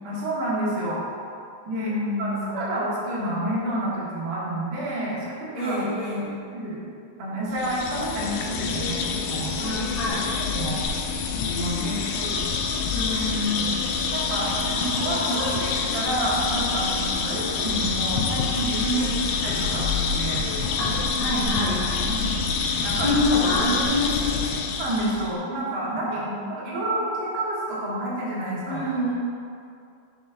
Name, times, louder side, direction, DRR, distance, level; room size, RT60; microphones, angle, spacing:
voice 1, 0.0-1.0 1.7-1.9 2.2-5.8 6.5-6.9 7.2-10.1 10.4-10.8 11.5-12.4 13.6-19.1 19.4-20.4 22.1-22.3 22.8-23.2 24.8-28.8, right 1 dB, 55° right, -7 dB, 2.2 m, -29 dB
voice 2, 1.7-2.6 5.5-6.4 9.6-10.3 11.8-12.1 12.9-13.8 15.3-15.4 18.9-19.2 20.8-20.9 21.2-22.1 23.0-24.6 25.2-25.4 26.1-26.6 28.7-29.2, left 2 dB, 60° left, -8 dB, 1.3 m, -27 dB
sound 1, 7.5-25.3, left 5 dB, 85° left, 2.3 m, -27 dB
6.0 x 6.0 x 3.7 m, 2.4 s
omnidirectional pair, 4.1 m